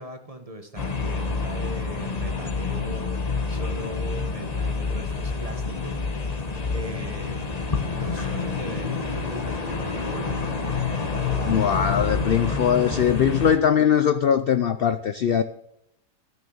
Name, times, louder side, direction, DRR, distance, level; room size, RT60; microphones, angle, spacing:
voice 1, 0.0-3.2 3.5-6.0 6.7-7.4 7.9-10.4 11.2-11.5 12.8-13.2, right 1 dB, 25° right, 5 dB, 1.4 m, -39 dB
sound 1, 0.8-13.6, left 4 dB, 25° left, 1.3 m, -28 dB
voice 2, 11.5-15.4, left 8 dB, 70° left, 11 dB, 0.5 m, -21 dB
14.0 x 6.4 x 7.9 m, 0.80 s
omnidirectional pair, 1.7 m